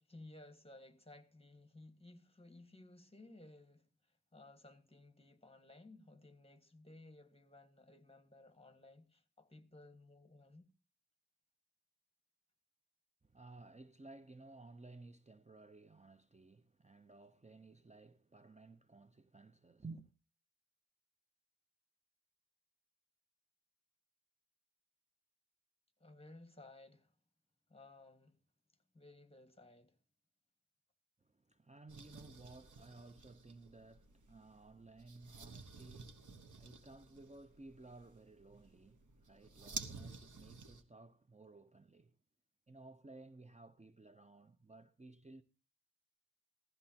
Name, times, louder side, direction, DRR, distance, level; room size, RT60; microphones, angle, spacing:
voice 1, 0.0-10.7 26.0-27.1 27.7-28.4 28.9-30.0, left 2 dB, 20° left, 1.7 m, -58 dB
voice 2, 13.2-20.1 31.2-42.2 42.7-45.4, right 3 dB, 25° right, 0.7 m, -56 dB
sound 1, 31.9-40.8, right 4 dB, 90° right, 1.1 m, -52 dB
16.0 x 13.0 x 2.8 m
wide cardioid pair, 65°, 29 cm